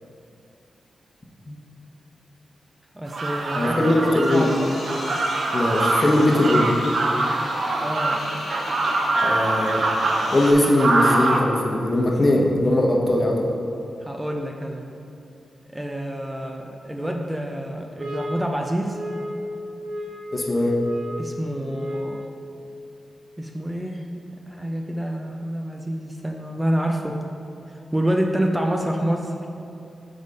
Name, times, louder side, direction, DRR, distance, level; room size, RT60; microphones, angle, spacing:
voice 1, 2.9-4.7 7.8-8.2 14.0-14.9 15.7-19.0 21.2-22.2 23.4-24.1 24.5-27.2 27.9-29.3, right 1 dB, 15° right, 1 dB, 0.6 m, -27 dB
sound 1, 3.1-11.4, right 2 dB, 65° right, 0.6 m, -24 dB
voice 2, 3.5-4.6 5.5-6.8 9.2-9.8 10.3-13.5 20.3-20.8, left 1 dB, 35° left, -1 dB, 1.0 m, -20 dB
sound 2, 4.3-10.5, left 1 dB, 80° left, 1.3 m, -36 dB
sound 3, 18.0-22.3, left 1 dB, 45° right, 1.4 m, -33 dB
4.9 x 4.0 x 5.3 m, 2.6 s
supercardioid pair, 40°, 0 cm